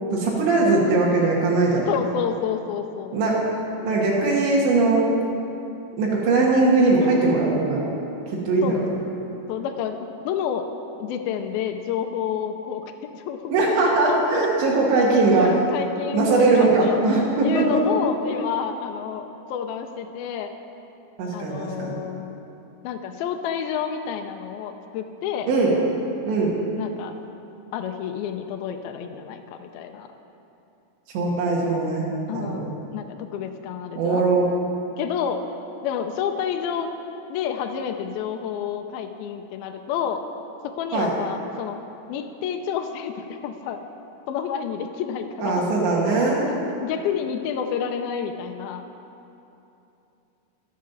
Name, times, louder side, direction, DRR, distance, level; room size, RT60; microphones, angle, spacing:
voice 1, 0.1-1.9 3.1-3.4 3.8-5.0 6.0-7.8 8.5-8.8 13.5-15.5 16.1-17.8 21.2-21.9 25.5-25.7 26.3-26.5 31.1-32.7 34.0-34.5 40.9-41.1 45.4-46.5, right 3 dB, 85° right, -4 dB, 4.1 m, -20 dB
voice 2, 1.9-3.2 8.6-8.8 9.5-10.7 11.0-14.5 14.7-14.8 15.1-20.5 21.3-22.4 22.8-25.5 26.8-27.1 27.7-30.1 32.3-34.3 35.0-35.4 35.8-36.9 37.3-40.2 40.6-41.8 42.1-43.8 44.3-45.7 46.2-48.8, left 8 dB, 85° left, 5 dB, 2.2 m, -30 dB
12.5 x 11.5 x 7.1 m, 2.9 s
omnidirectional pair, 5.0 m